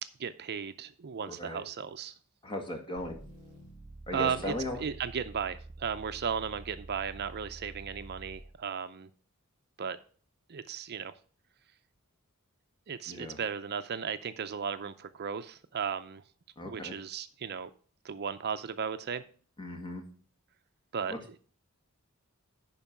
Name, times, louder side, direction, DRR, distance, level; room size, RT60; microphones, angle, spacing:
voice 1, 0.2-2.1 4.1-4.5 4.8-9.1 9.8-10.0 10.5-11.1 12.9-16.2 16.6-17.7 18.0-19.2 20.9-21.4, right 7 dB, 50° right, 10 dB, 0.5 m, -35 dB
voice 2, 1.3-1.6 2.4-3.2 4.1-4.8 13.1-13.4 16.6-16.9 19.6-20.0 21.1-21.2, left 1 dB, 25° left, 3 dB, 1.9 m, -37 dB
sound 1, 3.0-8.6, right 2 dB, 25° right, 4.9 m, -48 dB
11.0 x 4.6 x 6.0 m, 0.42 s
head